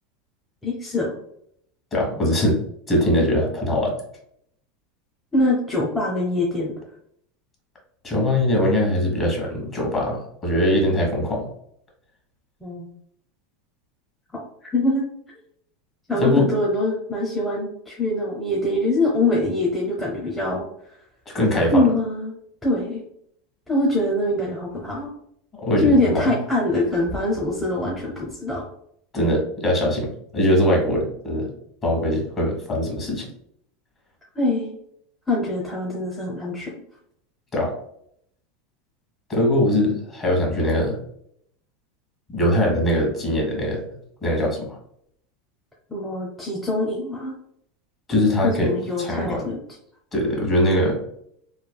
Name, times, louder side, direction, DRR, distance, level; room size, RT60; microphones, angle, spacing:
voice 1, 0.6-1.1 5.3-6.7 12.6-12.9 14.3-15.0 16.1-20.6 21.7-22.4 22.6-23.0 23.7-25.1 25.8-28.6 34.4-34.8 35.3-36.7 45.9-47.3 48.4-49.6, left 1 dB, 10° left, -4 dB, 0.6 m, -23 dB
voice 2, 1.9-2.6 2.9-3.9 8.0-11.5 16.2-16.5 21.3-21.8 25.6-26.4 29.1-31.5 31.8-33.2 37.5-37.7 39.3-41.0 42.3-43.8 44.2-44.8 48.1-49.4 50.1-51.0, left 1 dB, 30° left, -1 dB, 1.3 m, -21 dB
3.2 x 2.3 x 2.3 m, 0.70 s
hypercardioid pair, 105°, 0 cm